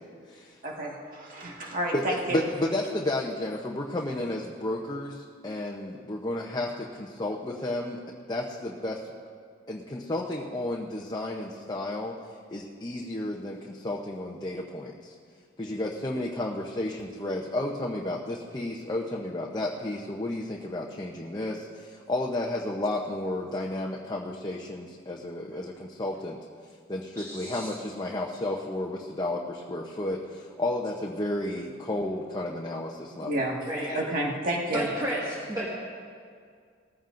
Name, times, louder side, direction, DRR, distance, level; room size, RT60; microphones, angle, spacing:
voice 1, 0.6-2.4 33.2-33.6 33.9-34.9, right 1 dB, 45° right, -2 dB, 1.8 m, -30 dB
voice 2, 2.3-8.0 8.3-9.1 9.7-12.2 12.5-15.1 15.6-26.4 26.9-33.4 33.8-34.1, left 1 dB, 20° left, -2 dB, 0.8 m, -32 dB
voice 3, 27.2-27.7 33.7-33.9 34.7-35.7, right 1 dB, 20° right, -7 dB, 1.9 m, -32 dB
19.0 x 15.0 x 2.6 m, 2.1 s
head